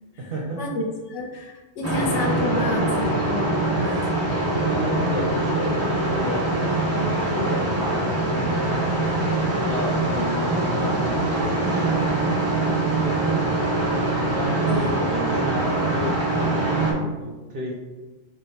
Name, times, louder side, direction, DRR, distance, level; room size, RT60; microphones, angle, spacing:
voice 1, 0.2-0.8 4.7-6.5 6.9-9.1 9.5-12.0 14.4-17.7, equal, 60° right, -1 dB, 0.7 m, -31 dB
voice 2, 1.1-3.7 14.7-14.9, left 3 dB, 70° left, 1 dB, 0.9 m, -29 dB
sound 1, 1.8-16.9, right 2 dB, 20° right, 0.4 m, -23 dB
3.6 x 2.2 x 4.1 m, 1.2 s
omnidirectional pair, 1.3 m